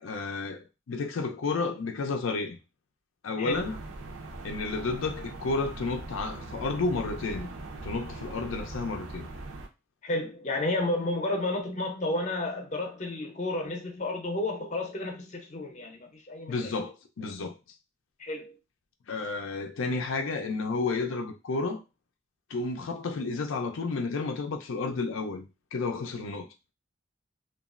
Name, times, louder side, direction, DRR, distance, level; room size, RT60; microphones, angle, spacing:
voice 1, 0.0-2.6 3.2-3.8 4.4-7.5 7.8-9.3 16.5-17.6 19.1-21.8 22.5-26.5, left 3 dB, 85° left, 0.5 m, -31 dB
voice 2, 3.4-3.7 10.0-16.7 18.2-18.6, left 2 dB, 35° left, 0.6 m, -31 dB
sound 1, 3.5-9.7, right 2 dB, 80° right, 0.5 m, -41 dB
3.0 x 2.3 x 2.4 m
head